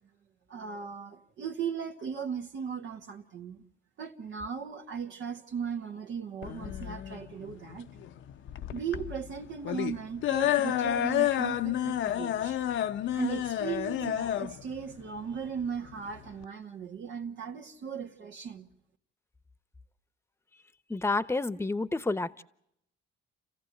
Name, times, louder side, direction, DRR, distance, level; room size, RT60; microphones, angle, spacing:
voice 1, 0.5-3.6 4.0-7.9 8.7-12.6 13.1-18.7, right 7 dB, 70° right, 1.8 m, -37 dB
sound 1, 6.4-16.4, left 12 dB, 75° left, 0.8 m, -30 dB
voice 2, 20.9-22.4, left 3 dB, 10° left, 1.0 m, -29 dB
29.0 x 15.5 x 8.0 m
cardioid pair, 90°, 20 cm